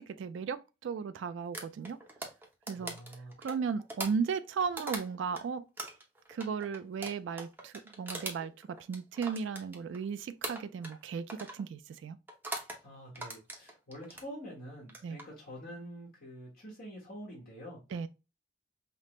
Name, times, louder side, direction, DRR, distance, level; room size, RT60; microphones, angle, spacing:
voice 1, 0.0-2.0 2.7-2.9 3.4-5.6 6.3-12.2 15.0-15.2 17.9-18.1, right 6 dB, 70° right, 0.3 m, -36 dB
sound 1, 1.5-5.4 5.8-10.0 10.4-11.0 11.3-11.6 12.3-12.8 13.1-14.3 14.8-15.2, right 2 dB, 10° right, 0.8 m, -41 dB
voice 2, 2.7-3.4 12.8-17.8, equal, 50° left, 1.3 m, -46 dB
5.7 x 2.0 x 3.1 m
head